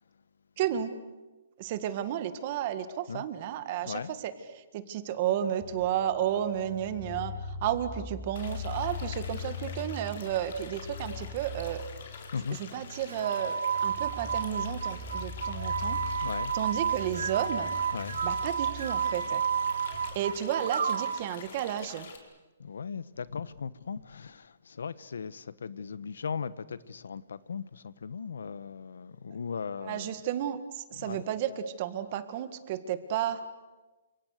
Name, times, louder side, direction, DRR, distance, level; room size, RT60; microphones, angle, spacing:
voice 1, 0.6-0.9 1.6-11.8 12.6-16.0 16.5-17.7 18.2-19.4 20.0-22.1 29.8-33.4, right 10 dB, 30° right, 1.8 m, -32 dB
voice 2, 3.8-4.2 8.0-8.1 12.3-12.6 15.4-15.5 16.2-16.6 17.9-18.2 20.0-20.1 22.6-30.2 31.0-31.2, left 6 dB, 85° left, 1.2 m, -38 dB
sound 1, 5.6-19.9, left 4 dB, 25° left, 6.4 m, -41 dB
sound 2, 8.3-22.2, left 6 dB, 50° left, 4.4 m, -48 dB
sound 3, 13.1-21.3, right 7 dB, 85° right, 2.1 m, -31 dB
29.5 x 27.5 x 6.7 m
hypercardioid pair, 170°, 0 cm